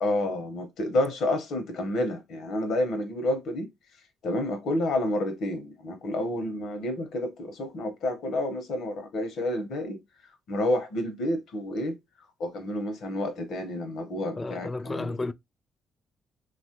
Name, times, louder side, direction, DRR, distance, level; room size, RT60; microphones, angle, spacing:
voice 1, 0.0-3.7 4.2-10.0 10.5-11.9 12.4-15.2, left 1 dB, 75° left, 0.9 m, -29 dB
voice 2, 14.4-15.3, left 3 dB, 25° left, 0.3 m, -32 dB
3.0 x 2.4 x 2.8 m
cardioid pair, 90°, 0 cm